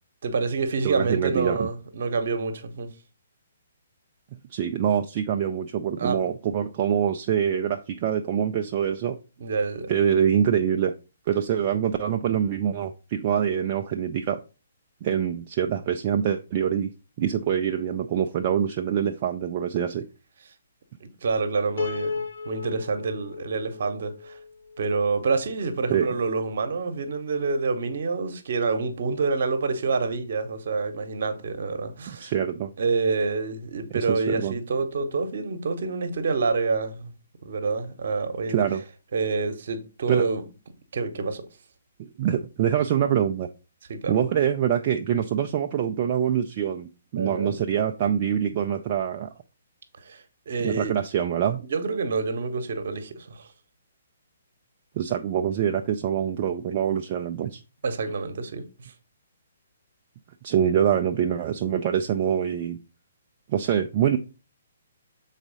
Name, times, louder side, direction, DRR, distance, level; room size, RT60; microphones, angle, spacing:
voice 1, 0.2-2.9 6.0-6.2 9.4-9.9 21.0-22.1 22.4-24.4 24.8-32.3 32.8-37.1 37.4-38.6 39.1-40.4 40.9-41.4 43.9-44.2 47.2-47.6 50.0-50.9 51.6-53.5 57.8-58.9, right 4 dB, 50° right, 1.1 m, -27 dB
voice 2, 0.8-1.6 4.5-9.2 9.9-10.9 11.3-14.4 15.0-16.9 17.2-20.1 25.9-26.1 32.1-32.7 33.9-34.5 38.5-38.8 40.1-40.3 42.2-43.5 44.1-49.3 50.6-51.6 55.0-57.6 60.4-62.8 63.5-64.2, right 9 dB, 35° right, 0.5 m, -25 dB
Piano, 21.8-25.0, left 4 dB, 60° left, 0.9 m, -33 dB
6.9 x 4.1 x 4.0 m
figure-of-eight pair, 130°, 0 cm